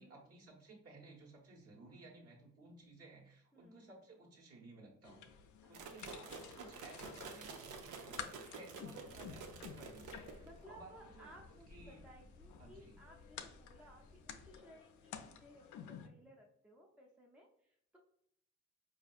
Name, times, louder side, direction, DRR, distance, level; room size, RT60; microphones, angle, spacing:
voice 1, 0.0-5.2 5.7-6.3 6.6-11.4 11.7-12.0 12.6-13.0, right 2 dB, 50° right, -2 dB, 1.4 m, -57 dB
voice 2, 3.5-3.8 5.6-6.7 9.0-9.4 10.4-18.0, right 1 dB, 5° right, -1 dB, 0.6 m, -61 dB
sound 1, 5.0-16.1, left 8 dB, 75° left, 0.5 m, -53 dB
sound 2, 5.7-10.6, right 4 dB, 85° right, 0.6 m, -50 dB
sound 3, 9.0-14.6, left 3 dB, 30° left, 0.8 m, -60 dB
4.5 x 2.6 x 2.4 m, 0.73 s
cardioid pair, 90°, 30 cm